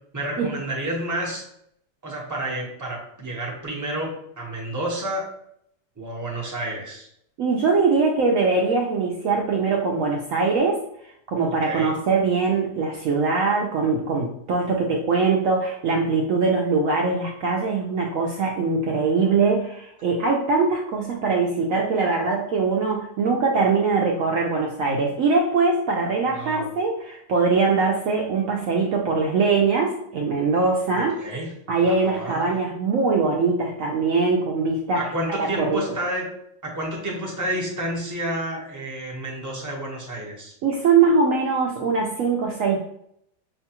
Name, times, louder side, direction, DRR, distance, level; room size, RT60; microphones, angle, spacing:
voice 1, 0.1-1.4 2.0-5.3 6.0-7.1 11.5-11.9 26.3-26.7 30.9-31.5 31.8-32.6 34.9-36.3 36.6-40.5, right 1 dB, 20° right, -3 dB, 0.5 m, -30 dB
voice 2, 7.4-10.8 11.3-31.2 31.7-35.8 40.6-42.8, right 4 dB, 75° right, 0 dB, 0.7 m, -22 dB
5.6 x 2.2 x 2.8 m, 0.73 s
omnidirectional pair, 1.9 m